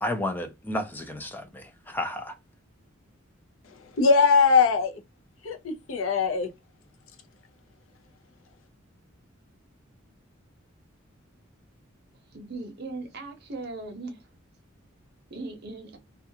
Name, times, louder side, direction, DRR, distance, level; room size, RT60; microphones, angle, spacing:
voice 1, 0.0-2.4, left 1 dB, 10° left, 0.3 m, -32 dB
voice 2, 4.0-4.9 5.4-6.5, left 5 dB, 70° left, 0.6 m, -21 dB
voice 3, 12.3-14.3 15.3-16.0, right 3 dB, 50° right, 0.7 m, -38 dB
2.4 x 2.2 x 2.7 m
head